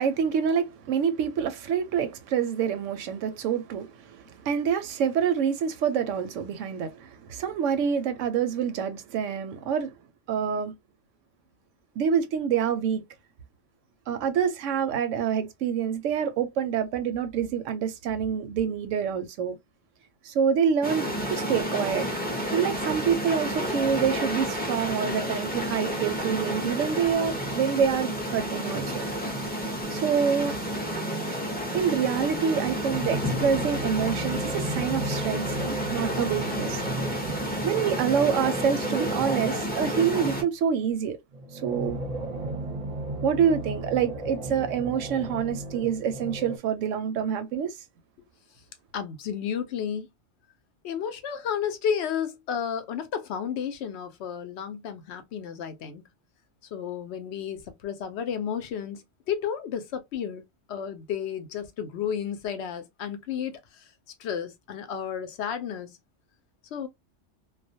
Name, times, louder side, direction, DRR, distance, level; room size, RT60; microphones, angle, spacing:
voice 1, 0.0-9.9 10.3-10.7 12.0-13.0 14.1-19.6 20.2-22.1 22.5-29.0 29.9-30.5 31.7-36.8 37.6-41.2 41.5-42.0 43.2-47.8, right 7 dB, 90° right, 0.9 m, -27 dB
sound 1, 20.8-40.4, equal, 15° left, 0.4 m, -30 dB
sound 2, 32.8-40.4 41.3-46.6, right 1 dB, 40° right, 0.6 m, -35 dB
voice 2, 48.9-50.1 50.8-56.0 56.7-60.4 60.7-63.9 64.2-66.0 66.7-66.9, left 8 dB, 70° left, 0.8 m, -32 dB
2.3 x 2.1 x 2.6 m
omnidirectional pair, 1.3 m